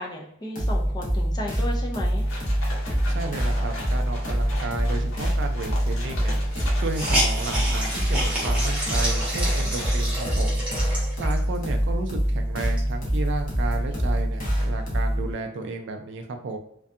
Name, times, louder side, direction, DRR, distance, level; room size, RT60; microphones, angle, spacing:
voice 1, 0.0-2.2 9.6-9.7, left 1 dB, 20° left, 0 dB, 0.4 m, -34 dB
sound 1, 0.6-15.3, equal, 45° left, 0.7 m, -25 dB
sound 2, 2.2-10.0, left 1 dB, 75° left, 0.8 m, -39 dB
voice 2, 3.1-6.4 6.8-10.6 11.2-16.6, right 3 dB, 60° right, 5 dB, 0.3 m, -33 dB
Hiss, 5.7-5.8 6.0-6.1 6.5-11.6 12.1-12.2 12.6-14.0, equal, 5° right, 0.7 m, -30 dB
2.6 x 2.2 x 2.4 m, 0.71 s
head